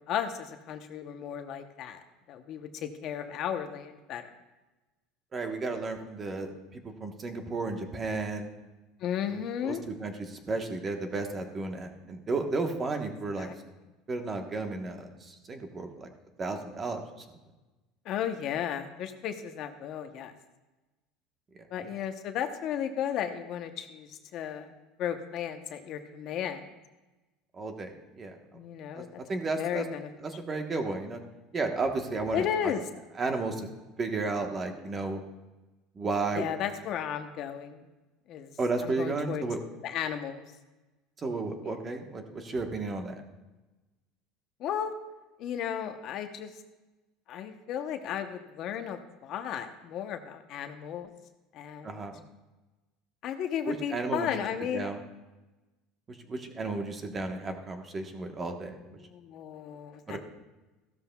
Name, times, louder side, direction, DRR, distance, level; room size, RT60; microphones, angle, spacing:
voice 1, 0.1-2.0 2.3-4.2 9.0-9.9 13.4-13.5 18.0-20.3 21.7-24.7 25.0-26.6 28.5-29.2 29.6-30.1 32.3-32.9 36.4-37.9 38.3-38.5 38.8-39.5 39.8-40.4 44.6-44.9 45.4-46.5 47.3-51.1 51.5-52.0 53.2-54.9 58.6-60.2, left 9 dB, 50° left, 7 dB, 0.8 m, -34 dB
voice 2, 5.3-8.5 9.3-13.5 14.1-16.1 16.4-17.0 27.5-28.3 28.9-29.0 29.3-29.8 30.2-31.2 31.5-32.5 33.2-33.7 34.0-35.2 36.0-36.5 38.6-39.6 41.2-43.2 51.8-52.2 53.7-54.3 54.7-55.0 56.3-58.7 60.1-60.2, right 3 dB, 25° right, 5 dB, 1.2 m, -33 dB
15.0 x 13.0 x 2.3 m, 1.1 s
cardioid pair, 145°, 0 cm